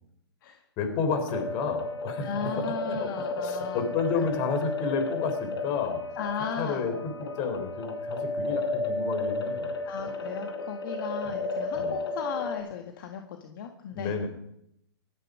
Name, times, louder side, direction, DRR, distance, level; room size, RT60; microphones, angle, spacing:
voice 1, 0.8-6.0 6.6-9.7 11.2-11.3 11.7-12.0 13.9-14.3, left 5 dB, 35° left, 7 dB, 3.9 m, -31 dB
sound 1, 1.1-12.6, left 2 dB, 70° left, 4.0 m, -33 dB
voice 2, 2.2-3.9 4.1-4.3 6.2-6.9 9.9-14.2, left 7 dB, 50° left, 4 dB, 1.8 m, -36 dB
18.0 x 13.5 x 5.0 m, 0.78 s
hypercardioid pair, 135°, 14 cm